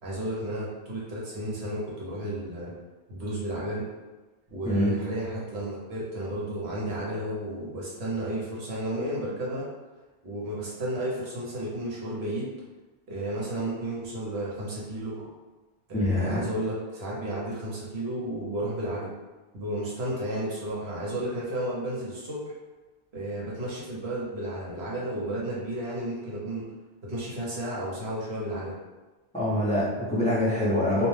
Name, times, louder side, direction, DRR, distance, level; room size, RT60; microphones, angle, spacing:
voice 1, 0.0-2.7 3.1-3.9 4.5-9.7 10.2-12.5 13.1-15.3 15.9-19.1 19.5-22.5 23.1-26.7 27.0-28.8, right 1 dB, 65° right, -5 dB, 1.0 m, -32 dB
voice 2, 4.6-5.0 15.9-16.4 29.3-31.1, left 1 dB, 10° left, -9 dB, 0.5 m, -25 dB
2.4 x 2.1 x 3.1 m, 1.2 s
omnidirectional pair, 1.2 m